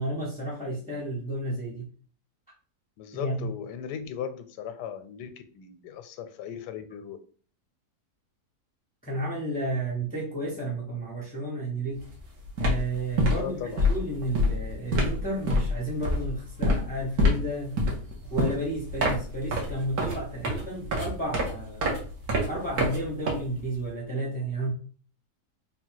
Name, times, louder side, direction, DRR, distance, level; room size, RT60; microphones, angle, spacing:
voice 1, 0.0-1.9 3.1-3.5 9.0-12.0 12.6-17.8 18.2-21.8 22.5-24.7, right 1 dB, 10° left, 0.5 m, -32 dB
voice 2, 3.0-7.2 13.4-13.9, left 8 dB, 90° left, 1.2 m, -37 dB
sound 1, 12.0-12.2 12.4-23.9, left 1 dB, 70° right, 1.6 m, -27 dB
3.8 x 2.2 x 4.5 m
omnidirectional pair, 1.7 m